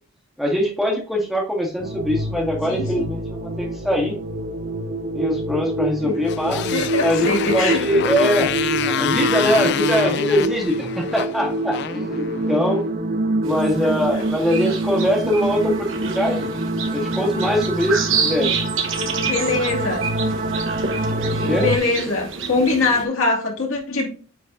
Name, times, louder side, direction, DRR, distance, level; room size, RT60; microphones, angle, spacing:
voice 1, 0.4-3.2 3.6-4.2 5.1-6.7 7.0-8.5 8.8-12.9 13.4-16.5 16.9-18.5 21.1-21.7, equal, ahead, -1 dB, 1.8 m, -22 dB
sound 1, 1.8-21.8, right 2 dB, 40° right, 0.5 m, -26 dB
voice 2, 2.7-3.1 6.0-6.1 6.7-7.8 19.2-20.0 21.6-24.1, left 3 dB, 70° left, -1 dB, 2.5 m, -22 dB
Motorcycle, 6.2-12.7, left 8 dB, 55° left, 0.3 m, -27 dB
sound 2, 13.4-23.1, right 5 dB, 60° right, 1.1 m, -29 dB
9.4 x 4.5 x 2.6 m, 0.38 s
head